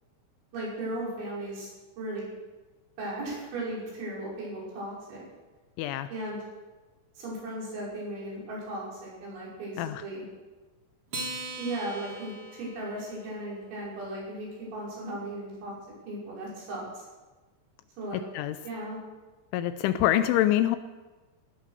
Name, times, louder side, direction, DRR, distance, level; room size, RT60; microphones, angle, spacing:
voice 1, 0.5-1.7 2.0-2.3 3.0-5.3 6.1-6.4 7.2-10.2 11.6-15.7 16.1-17.1 18.0-18.2 18.6-19.0, right 1 dB, 65° right, -6 dB, 7.9 m, -36 dB
voice 2, 5.8-6.1 9.8-10.0 18.3-18.6 19.5-20.8, left 13 dB, 80° left, 11 dB, 2.9 m, -25 dB
Acoustic guitar, 11.1-13.8, right 2 dB, 35° right, 2.6 m, -40 dB
16.0 x 11.5 x 6.6 m, 1.2 s
omnidirectional pair, 5.7 m